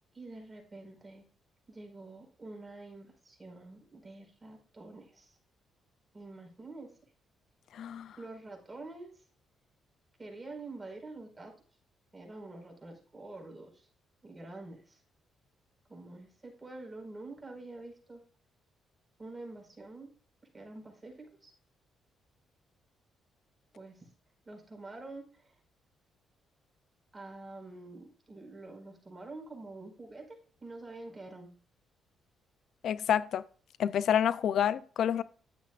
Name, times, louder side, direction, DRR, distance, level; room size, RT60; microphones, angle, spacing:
voice 1, 0.1-1.2 1.7-5.4 6.1-6.9 8.2-9.2 10.2-11.6 12.1-13.9 14.2-15.0 15.9-18.2 19.2-20.1 20.5-21.5 23.7-24.1 24.4-25.6 27.1-31.5, right 2 dB, 20° right, 5.0 m, -47 dB
voice 2, 7.7-8.1 32.8-33.4 33.8-35.2, left 9 dB, 65° left, 0.4 m, -28 dB
12.5 x 9.0 x 2.4 m
cardioid pair, 90°, 0 cm